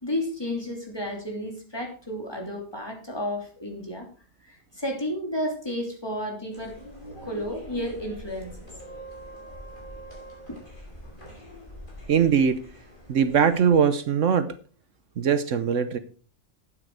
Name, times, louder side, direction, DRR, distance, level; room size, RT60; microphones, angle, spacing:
voice 1, 0.0-4.1 4.5-6.8 7.2-8.5 11.0-11.1, left 1 dB, 20° left, 1 dB, 3.3 m, -32 dB
sound 1, 6.5-13.7, equal, 40° left, 4.4 m, -44 dB
voice 2, 12.1-12.6 13.1-14.5 15.2-16.0, right 7 dB, 70° right, 12 dB, 1.2 m, -21 dB
12.5 x 9.1 x 4.7 m, 0.39 s
omnidirectional pair, 1.4 m